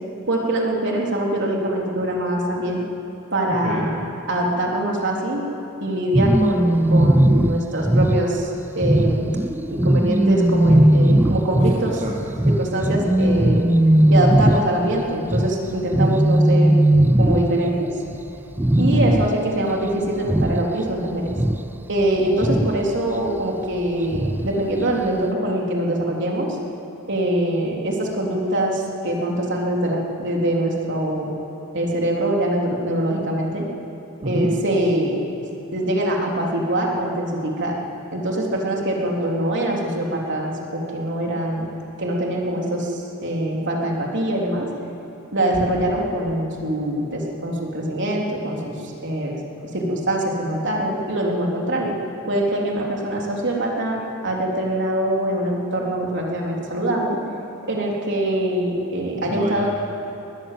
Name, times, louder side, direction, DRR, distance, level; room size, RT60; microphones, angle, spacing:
voice 1, 0.3-2.8 3.3-5.4 5.8-9.3 9.7-12.0 12.5-13.7 14.1-16.8 17.2-17.9 18.8-21.3 21.9-26.6 27.1-31.3 31.7-33.6 34.2-35.2 35.7-37.8 38.1-41.7 42.0-44.7 45.3-49.4 49.6-51.9 52.3-54.0 54.2-57.2 57.7-59.7, right 1 dB, 55° right, -1 dB, 3.7 m, -23 dB
voice 2, 3.5-3.9 11.7-12.3 34.2-34.5 59.3-59.7, right 1 dB, 30° right, -2 dB, 1.7 m, -28 dB
sound 1, 6.1-17.9 18.1-18.3 18.6-19.5 19.8-20.9 21.3-22.8 24.1-24.5 25.0-25.1, right 1 dB, 10° right, 0.4 m, -18 dB
20.5 x 20.5 x 7.7 m, 2.8 s
head